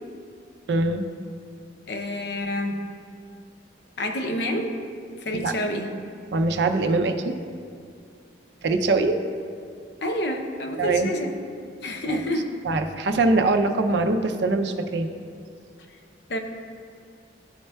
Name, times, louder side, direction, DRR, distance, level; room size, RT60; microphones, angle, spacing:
voice 1, 0.7-1.1 5.3-5.5 6.3-7.3 8.6-9.2 10.8-11.1 12.0-12.2 12.6-15.1, right 3 dB, 65° right, 6 dB, 0.4 m, -23 dB
voice 2, 1.9-2.8 4.0-4.8 5.2-5.9 10.0-11.4 11.8-12.5 16.3-16.4, left 1 dB, 60° left, 4 dB, 0.6 m, -28 dB
11.5 x 4.3 x 2.2 m, 2.3 s
head